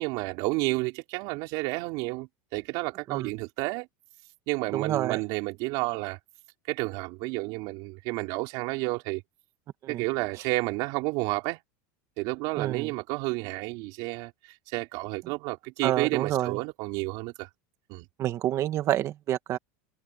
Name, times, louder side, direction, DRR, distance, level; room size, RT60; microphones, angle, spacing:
voice 1, 0.0-3.9 4.5-6.2 6.7-9.2 9.9-11.6 12.2-14.3 14.7-17.5 17.9-18.1, right 24 dB, 55° right, 5.0 m, -31 dB
voice 2, 4.7-5.2 9.9-10.0 12.6-12.9 15.8-16.6 18.2-19.6, right 12 dB, 35° right, 1.8 m, -28 dB
supercardioid pair, 145°, 8 cm